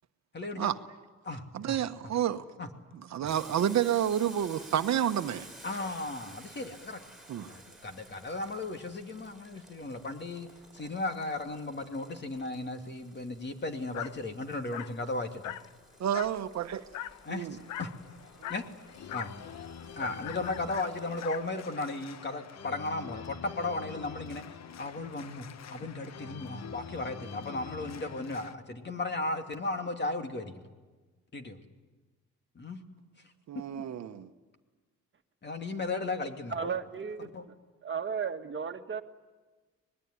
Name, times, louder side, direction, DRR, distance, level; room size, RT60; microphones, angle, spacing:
voice 1, 0.3-0.7 1.2-1.8 2.6-2.7 3.2-3.3 5.6-7.0 7.5-10.5 10.7-15.5 17.2-17.9 18.5-18.6 19.1-19.3 20.0-30.7 31.3-31.6 32.5-32.8 33.5-33.6 35.4-36.7 37.2-37.4, left 2 dB, 35° left, 5 dB, 2.7 m, -36 dB
voice 2, 1.5-2.4 3.1-5.5 7.3-7.5 16.0-16.8 17.3-17.6 18.4-18.5 33.5-34.3, right 10 dB, 65° right, 9 dB, 1.2 m, -29 dB
Boiling, 3.2-21.7, right 1 dB, ahead, 4.9 m, -54 dB
Dog, 13.9-14.2 14.7-15.0 15.4-15.7 16.1-16.4 16.9-17.2 17.7-18.0 18.4-18.7 19.1-19.4 20.0-21.5, left 12 dB, 75° left, 0.7 m, -40 dB
Organ, 15.4-28.5, left 7 dB, 60° left, 1.2 m, -47 dB
voice 3, 36.5-37.3 37.8-39.0, right 6 dB, 40° right, 6 dB, 1.6 m, -34 dB
25.5 x 20.0 x 9.6 m, 1.3 s
cardioid pair, 90°, 30 cm